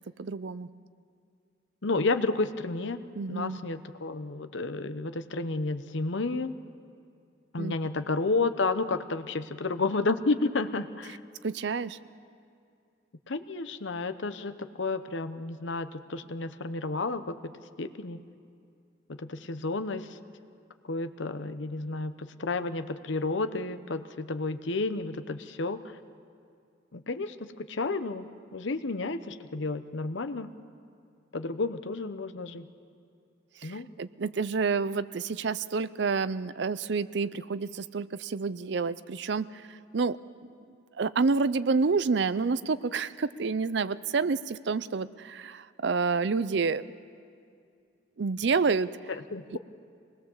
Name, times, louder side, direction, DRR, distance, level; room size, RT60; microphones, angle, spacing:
voice 1, 0.2-0.7 3.2-3.6 7.6-7.7 11.4-12.0 33.6-40.2 41.0-46.8 48.2-48.9, right 4 dB, 60° right, 15 dB, 0.5 m, -29 dB
voice 2, 1.8-3.0 3.3-6.5 7.5-11.2 13.3-17.5 17.8-18.2 19.1-20.1 20.9-25.8 26.9-30.5 31.3-32.7 33.6-33.9 49.3-49.6, left 3 dB, 70° left, 10 dB, 0.8 m, -31 dB
24.5 x 20.0 x 7.2 m, 2.4 s
head